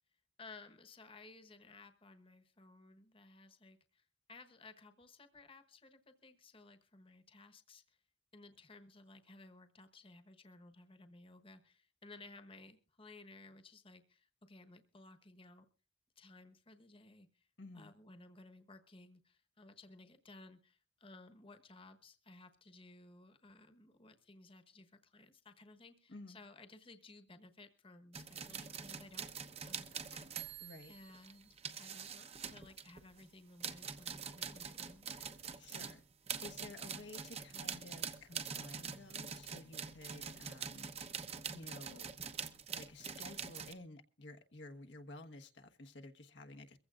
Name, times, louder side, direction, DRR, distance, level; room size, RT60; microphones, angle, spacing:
voice 1, 0.4-8.0 8.3-15.7 16.2-17.5 17.7-29.3 29.6-35.4, left 2 dB, 30° left, 1.2 m, -58 dB
voice 2, 17.6-17.9 26.1-26.4 30.6-30.9 35.6-36.0 36.4-40.9 41.5-42.1 42.7-46.8, left 2 dB, 80° left, 1.2 m, -53 dB
sound 1, 28.1-33.2 33.6-43.7, right 6 dB, 35° right, 0.9 m, -45 dB
23.0 x 15.5 x 2.5 m
head